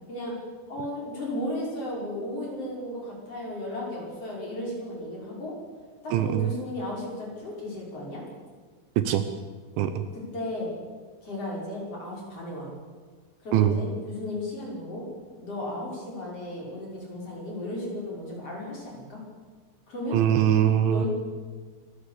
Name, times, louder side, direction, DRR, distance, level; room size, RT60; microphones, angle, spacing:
voice 1, 0.7-5.5 6.0-8.2 10.3-10.7 11.2-12.7 13.4-15.0 15.4-19.2 19.9-20.2 20.9-21.1, left 1 dB, 30° left, -3 dB, 6.4 m, -34 dB
voice 2, 6.1-6.5 9.0-9.3 9.8-10.0 13.5-13.8 20.1-21.1, right 10 dB, 75° right, 10 dB, 3.2 m, -22 dB
27.0 x 12.5 x 8.4 m, 1.5 s
omnidirectional pair, 5.8 m